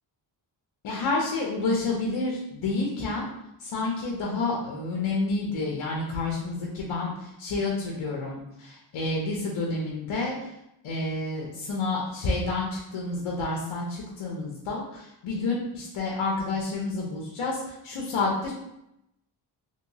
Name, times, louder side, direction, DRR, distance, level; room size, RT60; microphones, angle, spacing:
voice 1, 0.8-3.2 3.6-10.4 10.8-18.5, left 3 dB, 70° left, -2 dB, 0.8 m, -29 dB
3.0 x 2.8 x 2.7 m, 0.83 s
cardioid pair, 65°, 49 cm